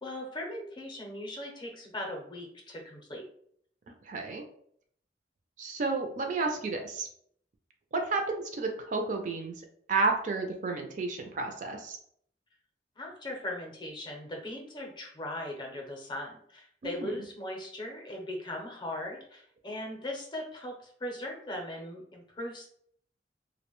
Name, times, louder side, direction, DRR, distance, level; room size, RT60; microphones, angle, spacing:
voice 1, 0.0-3.2 13.0-22.7, left 1 dB, 25° left, 0 dB, 0.6 m, -39 dB
voice 2, 4.0-4.4 5.6-7.1 7.9-9.5 9.9-12.0 16.8-17.1, right 3 dB, 45° right, 4 dB, 0.4 m, -31 dB
2.5 x 2.1 x 2.9 m, 0.65 s
head